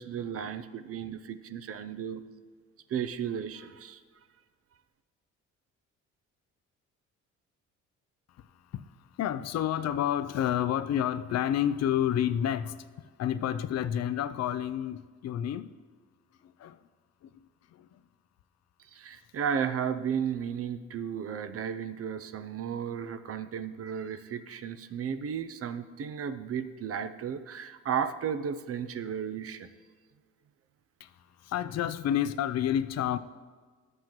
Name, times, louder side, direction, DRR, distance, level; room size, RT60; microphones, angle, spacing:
voice 1, 0.0-2.2 2.9-4.0 18.9-29.7, right 7 dB, 50° right, 0.6 m, -34 dB
voice 2, 9.2-12.9 13.2-15.7 16.6-16.8 17.2-17.3 17.7-18.0 31.0-31.1 31.4-33.2, left 10 dB, 60° left, 0.5 m, -29 dB
11.5 x 7.9 x 3.0 m
cardioid pair, 90°, 30 cm